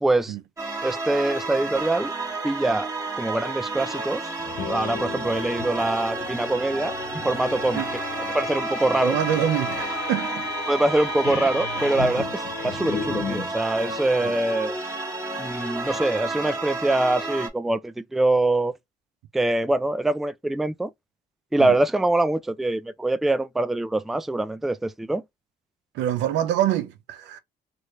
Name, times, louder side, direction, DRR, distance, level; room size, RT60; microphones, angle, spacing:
voice 1, 0.0-0.4 0.8-2.1 2.4-2.9 3.2-4.3 4.7-7.8 8.3-9.2 10.7-14.8 15.4-18.7 19.3-20.9 21.5-25.2, right 2 dB, ahead, 0.3 m, -24 dB
sound 1, 0.6-17.5, right 3 dB, 15° right, 1.5 m, -31 dB
sound 2, 4.4-13.5, left 6 dB, 75° left, 1.2 m, -34 dB
voice 2, 9.0-10.5 14.2-14.3 21.6-21.7 25.9-27.4, right 11 dB, 85° right, 0.6 m, -25 dB
3.0 x 2.5 x 3.1 m
cardioid pair, 90°, 18 cm